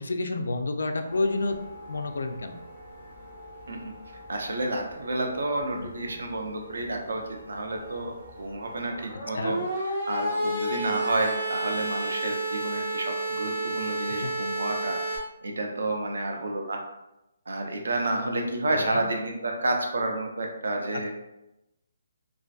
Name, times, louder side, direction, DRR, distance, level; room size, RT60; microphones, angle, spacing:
voice 1, 0.0-1.6 1.9-2.6 5.8-5.9 9.3-9.6 14.1-14.3 18.8-19.1 20.9-21.1, left 2 dB, 80° left, 6 dB, 0.3 m, -29 dB
sound 1, 1.1-15.2, right 1 dB, 5° right, 0.6 m, -33 dB
voice 2, 4.3-16.8 17.5-21.1, right 2 dB, 80° right, 2 dB, 0.5 m, -30 dB
2.4 x 2.4 x 2.3 m, 0.91 s
hypercardioid pair, 180°, 0 cm